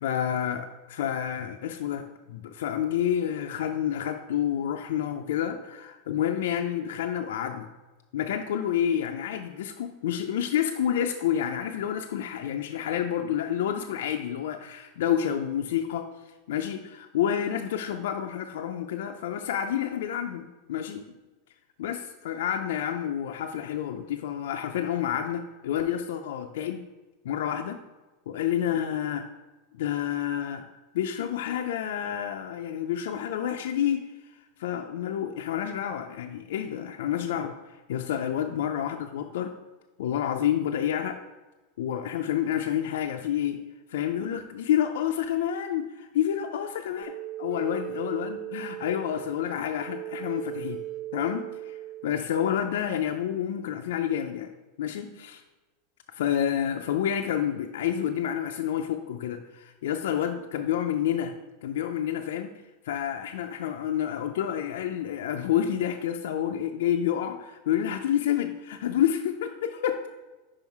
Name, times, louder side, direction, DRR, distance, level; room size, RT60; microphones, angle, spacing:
voice 1, 0.0-7.7 8.1-21.0 21.8-26.8 27.2-27.8 28.3-29.3 29.7-30.7 30.9-39.5 40.0-41.2 41.8-43.6 43.9-47.1 47.4-50.8 51.1-54.5 54.8-55.4 56.1-61.3 61.6-70.1, left 10 dB, 80° left, 4 dB, 0.4 m, -29 dB
sound 1, 47.0-52.6, right 14 dB, 10° right, 0.5 m, -38 dB
5.5 x 5.0 x 4.6 m, 1.2 s
supercardioid pair, 160°, 0 cm